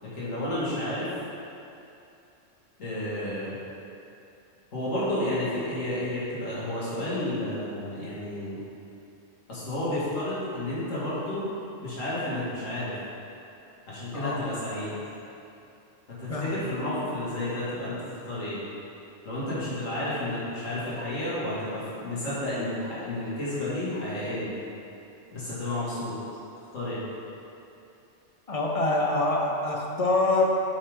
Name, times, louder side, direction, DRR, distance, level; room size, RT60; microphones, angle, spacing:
voice 1, 0.0-1.1 2.8-3.5 4.7-8.6 9.5-11.4 11.8-12.9 13.9-15.0 16.2-18.6 19.2-24.5 25.3-26.1 26.7-27.0, left 1 dB, 90° left, -9 dB, 2.4 m, -31 dB
voice 2, 28.5-30.4, left 2 dB, 35° left, -1 dB, 0.8 m, -25 dB
8.7 x 5.7 x 3.7 m, 2.8 s
omnidirectional pair, 1.3 m